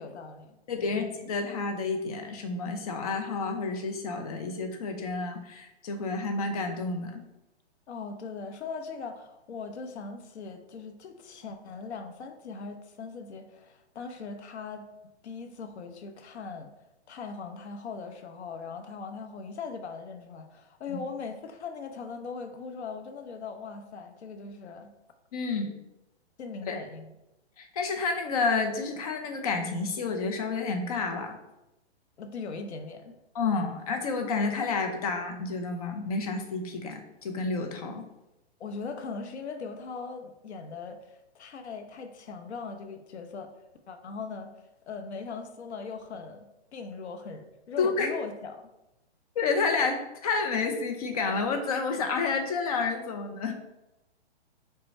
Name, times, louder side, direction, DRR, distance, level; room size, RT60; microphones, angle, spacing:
voice 1, 0.0-0.5 0.8-0.9 7.9-14.9 15.2-16.7 17.1-24.9 26.4-27.1 32.2-33.2 38.6-43.5 43.9-44.5 44.9-48.6, left 4 dB, 75° left, 6 dB, 0.8 m, -40 dB
voice 2, 0.7-7.2 20.9-21.0 25.3-25.7 26.7-26.8 27.6-31.4 33.3-38.0 47.8-48.1 49.4-53.5, left 4 dB, 35° left, 4 dB, 0.6 m, -30 dB
5.5 x 2.2 x 4.1 m, 0.94 s
hypercardioid pair, 155°, 34 cm